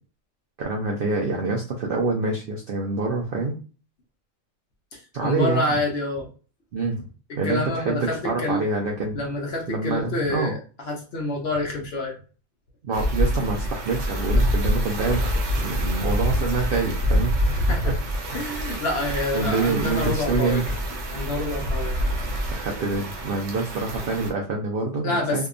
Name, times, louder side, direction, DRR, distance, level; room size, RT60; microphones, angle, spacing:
voice 1, 0.6-3.6 5.1-5.7 6.7-7.1 7.4-9.2 9.7-10.5 12.8-17.9 19.3-20.7 22.5-25.5, right 3 dB, 85° right, 0 dB, 0.4 m, -26 dB
voice 2, 5.2-6.3 7.4-8.6 9.1-10.6 10.9-12.1 17.7-17.9 18.3-20.6 21.1-22.0 25.0-25.5, left 2 dB, 60° left, 0 dB, 0.7 m, -27 dB
sound 1, 12.9-24.3, equal, 60° right, 0.9 m, -26 dB
2.7 x 2.2 x 2.4 m, 0.36 s
omnidirectional pair, 1.5 m